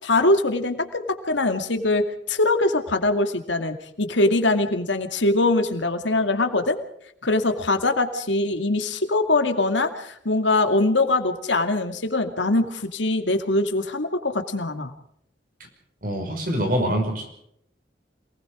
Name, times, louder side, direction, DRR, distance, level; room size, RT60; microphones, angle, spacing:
voice 1, 0.0-6.8 7.2-14.9, left 2 dB, 90° left, 7 dB, 2.3 m, -22 dB
voice 2, 16.0-17.3, equal, 50° right, 4 dB, 5.6 m, -25 dB
27.5 x 19.5 x 5.0 m, 0.70 s
head